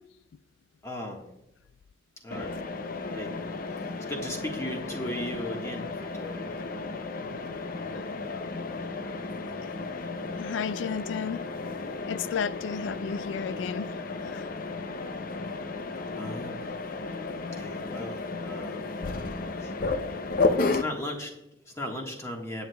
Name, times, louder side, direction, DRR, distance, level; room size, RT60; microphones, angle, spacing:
voice 1, 0.8-1.2 2.2-2.6 3.1-3.4 3.7-6.6 15.7-16.7 17.5-18.8 19.6-19.7 20.7-22.7, left 1 dB, 15° left, 1.4 m, -37 dB
Mechanisms, 2.3-20.8, left 3 dB, 50° left, 0.6 m, -33 dB
voice 2, 9.6-10.1 10.4-11.4 12.0-14.5, left 6 dB, 90° left, 0.3 m, -33 dB
19.0 x 8.0 x 2.3 m
head